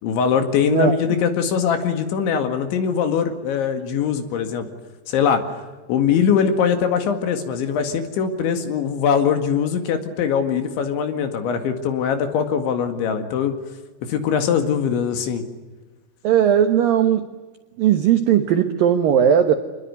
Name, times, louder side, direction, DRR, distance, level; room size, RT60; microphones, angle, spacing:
voice 1, 0.0-4.7 5.1-5.5 5.9-13.6 14.1-15.4, left 7 dB, 70° left, 7 dB, 4.1 m, -21 dB
voice 2, 0.6-1.0 16.2-17.4 17.8-19.5, right 9 dB, 75° right, 8 dB, 2.1 m, -17 dB
27.0 x 21.0 x 9.6 m, 1.2 s
omnidirectional pair, 5.9 m